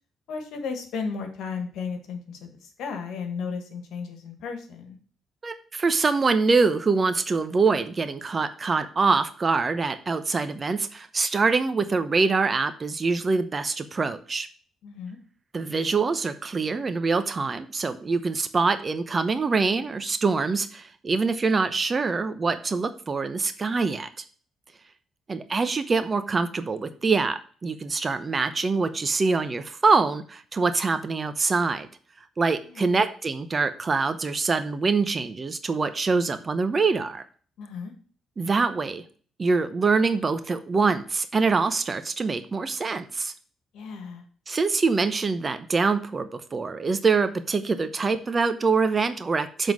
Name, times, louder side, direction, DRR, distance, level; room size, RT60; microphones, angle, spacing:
voice 1, 0.3-5.0 14.8-15.2 32.7-33.0 37.6-37.9 43.7-44.2, left 5 dB, 80° left, 6 dB, 1.6 m, -34 dB
voice 2, 5.4-14.5 15.5-24.1 25.3-31.9 32.4-37.2 38.4-39.0 39.4-43.3 44.5-49.7, right 4 dB, 35° right, 10 dB, 0.8 m, -24 dB
7.1 x 3.8 x 6.2 m, 0.44 s
cardioid pair, 90°, 0 cm